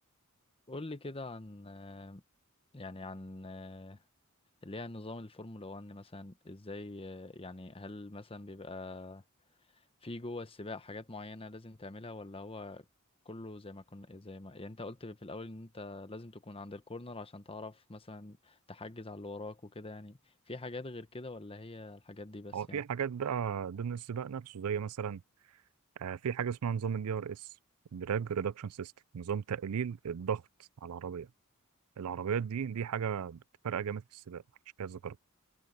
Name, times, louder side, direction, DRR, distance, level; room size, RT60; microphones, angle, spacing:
voice 1, 0.7-2.2 2.7-4.0 4.6-9.2 10.0-12.8 13.2-20.2 20.5-22.8, left 2 dB, 25° left, 1.1 m, -44 dB
voice 2, 22.5-25.2 26.0-27.5 27.9-30.4 30.8-31.3 32.0-34.4 34.8-35.2, right 7 dB, 80° right, 0.4 m, -35 dB
head